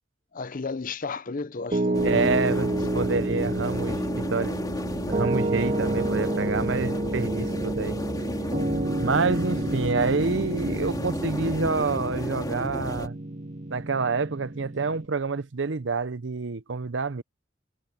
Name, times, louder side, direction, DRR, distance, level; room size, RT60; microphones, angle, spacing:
voice 1, 0.3-2.8, left 4 dB, 45° left, 0.7 m, -34 dB
Piano, 1.7-15.1, right 1 dB, 40° right, 1.9 m, -29 dB
sound 1, 1.9-13.1, equal, 20° left, 3.1 m, -33 dB
voice 2, 2.0-2.7 2.9-4.6 5.1-8.0 9.0-13.2 13.7-17.2, right 4 dB, 75° right, 0.7 m, -27 dB
head